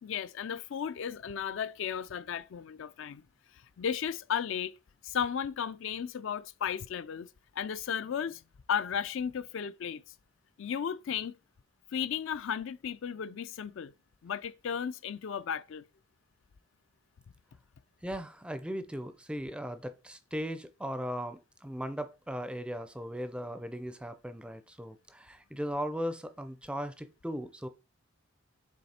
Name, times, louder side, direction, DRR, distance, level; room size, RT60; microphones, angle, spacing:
voice 1, 0.0-3.2 3.5-4.7 5.0-7.3 7.6-8.4 8.7-10.0 10.6-11.3 11.9-13.9 14.2-15.8, left 7 dB, 60° left, 0.3 m, -34 dB
voice 2, 18.0-27.7, equal, 5° right, 0.4 m, -38 dB
7.3 x 3.1 x 4.2 m
head